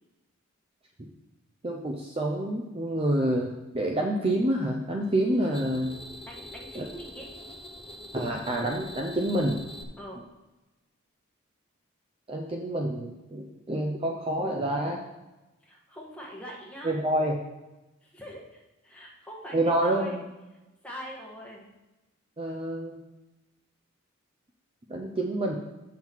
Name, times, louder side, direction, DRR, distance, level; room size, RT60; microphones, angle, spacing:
voice 1, 1.6-6.0 6.7-6.8 8.1-9.6 12.3-15.0 16.8-17.4 19.5-20.2 22.4-23.0 24.9-25.6, right 1 dB, 25° right, 1 dB, 0.6 m, -28 dB
sound 1, 5.0-9.8, left 1 dB, 30° left, 0.6 m, -44 dB
voice 2, 6.3-7.3 10.0-10.2 15.6-17.0 18.0-20.2 20.8-21.6, equal, 5° left, -3 dB, 1.5 m, -43 dB
7.4 x 5.8 x 4.5 m, 1.0 s
head